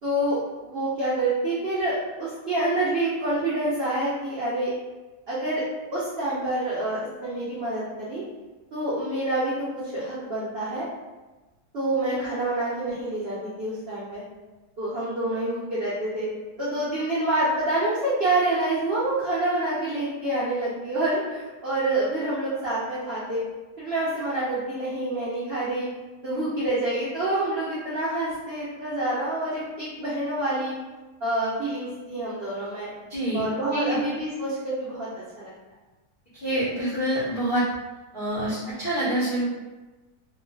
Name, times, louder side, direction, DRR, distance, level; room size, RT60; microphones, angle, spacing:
voice 1, 0.0-4.7 5.3-5.6 5.9-8.2 8.7-10.9 11.7-14.2 14.8-16.3 16.6-23.4 23.8-25.9 26.2-30.7 31.2-32.9 33.3-35.5, right 1 dB, 75° right, -10 dB, 0.5 m, -27 dB
voice 2, 33.1-33.4 33.7-34.0 36.3-37.6 38.1-39.5, right 1 dB, 80° left, -10 dB, 0.4 m, -26 dB
3.2 x 2.3 x 2.2 m, 1.2 s
omnidirectional pair, 1.9 m